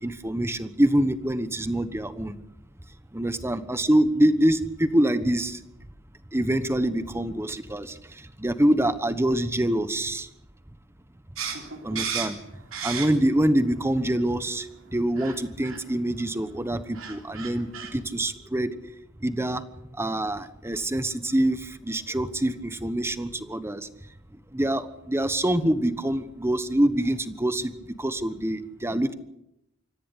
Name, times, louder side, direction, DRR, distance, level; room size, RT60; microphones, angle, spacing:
voice 1, 0.0-2.3 3.1-5.6 6.3-7.9 8.4-10.3 11.8-12.4 12.8-14.7 14.9-18.7 19.2-19.6 20.0-23.9 24.5-27.7 28.0-29.1, right 1 dB, 15° right, 12 dB, 1.2 m, -25 dB
sound 1, 11.4-13.4 13.8-14.5 15.2-15.4 15.6-15.8 16.6-16.7 16.9-17.9, right 7 dB, 80° right, 3.6 m, -33 dB
26.0 x 14.5 x 8.3 m, 0.85 s
head